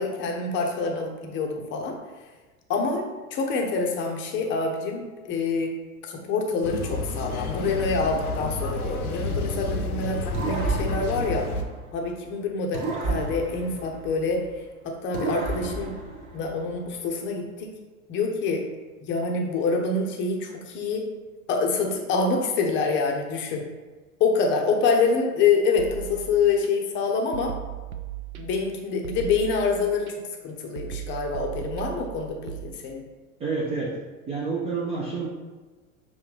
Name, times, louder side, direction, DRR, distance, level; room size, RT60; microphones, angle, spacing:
voice 1, 0.0-2.0 2.7-3.1 3.3-5.7 6.0-11.5 11.9-14.4 14.8-15.9 16.3-17.7 18.1-18.6 19.1-21.1 21.5-23.6 24.2-27.5 28.4-30.1 30.4-33.0, left 4 dB, 25° left, 1 dB, 0.6 m, -26 dB
sound 1, 6.6-11.6, left 3 dB, 85° left, 0.7 m, -30 dB
sound 2, 10.3-12.2 12.7-14.6 15.1-16.9, right 3 dB, 40° right, 1.0 m, -32 dB
sound 3, 25.8-26.7 27.3-28.7 29.0-30.1 30.8-32.6, right 11 dB, 75° right, 0.5 m, -37 dB
voice 2, 33.4-34.0 34.3-35.3, right 4 dB, 15° right, -4 dB, 0.4 m, -28 dB
5.7 x 2.8 x 3.2 m, 1.3 s
figure-of-eight pair, 85°, 43 cm